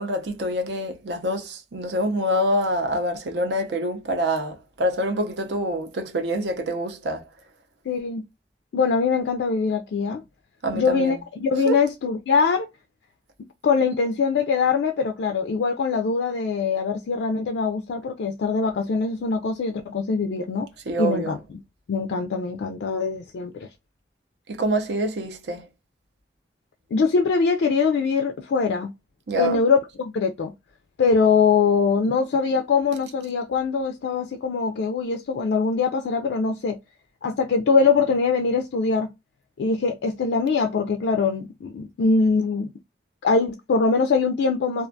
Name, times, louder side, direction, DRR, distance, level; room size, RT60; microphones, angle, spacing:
voice 1, 0.0-7.2 10.6-11.2 11.6-11.8 20.9-21.4 24.5-25.7 29.3-29.6, right 1 dB, 75° right, 0.6 m, -26 dB
voice 2, 7.9-8.2 8.7-10.2 10.7-12.7 13.6-20.7 21.0-21.4 21.9-23.7 26.9-28.9 29.4-30.5 31.0-36.8 37.2-39.1 39.6-42.7 43.2-44.9, left 5 dB, 85° left, 0.3 m, -22 dB
2.4 x 2.2 x 2.5 m
head